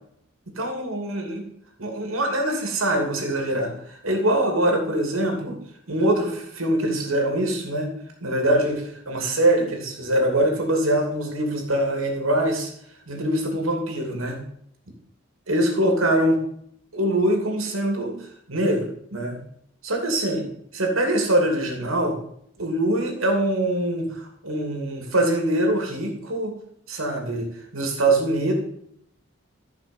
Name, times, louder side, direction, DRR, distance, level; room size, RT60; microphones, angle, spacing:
voice 1, 0.6-1.5 1.8-5.6 5.9-7.9 8.2-12.7 13.1-14.4 15.5-16.4 16.9-18.9 19.1-19.4 19.8-20.5 20.7-22.2 22.6-26.5 26.9-27.5 27.7-28.5, right 1 dB, 90° right, 2 dB, 2.7 m, -23 dB
14.0 x 5.7 x 5.4 m, 0.70 s
head